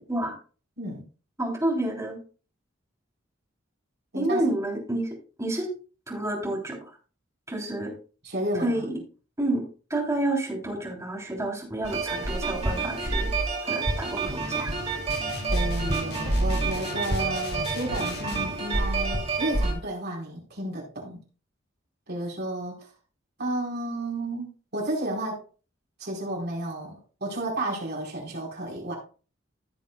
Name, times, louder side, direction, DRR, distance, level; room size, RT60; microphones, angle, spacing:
voice 1, 1.4-2.2 4.1-5.1 5.4-5.7 6.1-6.8 7.5-7.9 8.6-8.9 9.4-9.6 9.9-13.3 13.6-14.7, right 1 dB, 15° right, -1 dB, 3.3 m, -29 dB
voice 2, 4.1-4.4 8.2-8.8 15.5-21.2 22.1-22.9 23.4-25.4 26.0-29.0, right 1 dB, 55° right, -2 dB, 4.3 m, -32 dB
sound 1, 11.8-19.7, right 3 dB, 30° right, 2.7 m, -28 dB
sound 2, 15.1-18.6, left 3 dB, 55° left, 1.1 m, -39 dB
16.0 x 7.2 x 2.3 m, 0.36 s
head